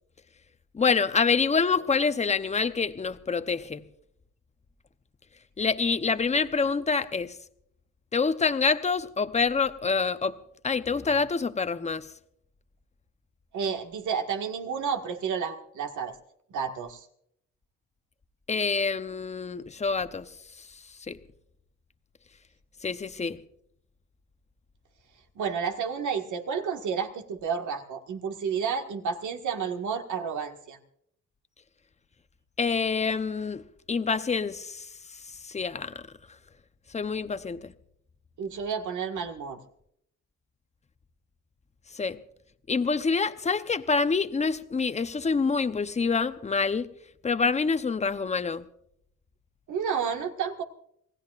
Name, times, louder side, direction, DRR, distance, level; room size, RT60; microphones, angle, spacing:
voice 1, 0.7-3.8 5.6-7.4 8.1-10.4 10.6-12.1 18.5-20.3 21.1-21.2 22.8-23.4 32.6-33.6 33.9-34.9 35.4-36.0 36.9-37.7 41.9-42.2 42.7-46.9 47.2-48.6, left 5 dB, 25° left, 0.8 m, -26 dB
voice 2, 13.5-16.2 16.5-17.1 25.4-30.8 38.4-39.6 49.7-50.6, right 6 dB, 75° right, 1.9 m, -31 dB
26.5 x 17.0 x 2.5 m
cardioid pair, 90°, 30 cm